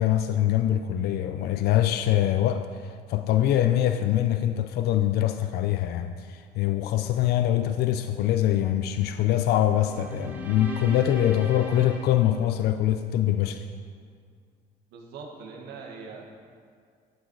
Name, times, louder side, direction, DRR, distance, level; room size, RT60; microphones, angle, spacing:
voice 1, 0.0-13.6, left 12 dB, 70° left, 8 dB, 0.5 m, -24 dB
sound 1, 9.8-13.2, equal, 10° right, 1.4 m, -39 dB
voice 2, 14.9-16.2, right 5 dB, 80° right, 0 dB, 1.7 m, -41 dB
12.0 x 7.4 x 4.7 m, 2.1 s
cardioid pair, 110°, 17 cm